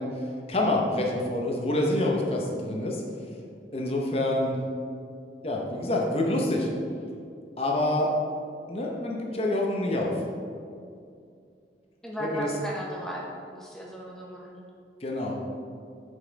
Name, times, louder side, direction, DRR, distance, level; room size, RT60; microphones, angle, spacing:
voice 1, 0.0-3.0 3.7-4.6 5.4-6.7 7.6-8.1 8.7-10.1 12.3-12.5 15.0-15.4, left 1 dB, 35° left, -1 dB, 0.8 m, -27 dB
voice 2, 12.0-14.7, equal, 5° left, -4 dB, 0.7 m, -36 dB
6.8 x 5.4 x 4.0 m, 2.4 s
head